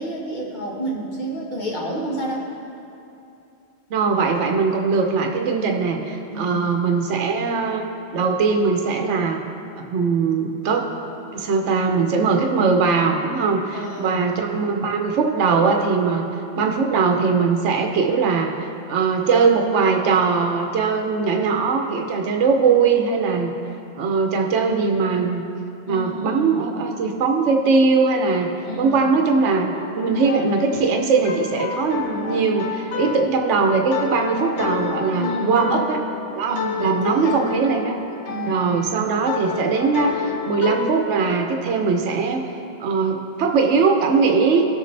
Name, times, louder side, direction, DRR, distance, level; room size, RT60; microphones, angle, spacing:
voice 1, 0.0-2.5 6.3-6.8 13.7-14.2 25.9-26.7 28.6-29.1 35.1-35.8 36.5-37.4 38.3-38.9, equal, 40° left, -3 dB, 1.6 m, -30 dB
voice 2, 3.9-7.8 8.1-9.4 9.9-10.9 11.3-16.3 16.6-23.5 24.0-25.4 25.9-36.0 36.4-38.0 38.5-42.4 42.8-44.7, right 4 dB, 80° right, 3 dB, 1.1 m, -20 dB
sound 1, 29.7-41.0, left 6 dB, 75° left, 1.1 m, -30 dB
17.0 x 6.5 x 3.3 m, 2.7 s
omnidirectional pair, 1.2 m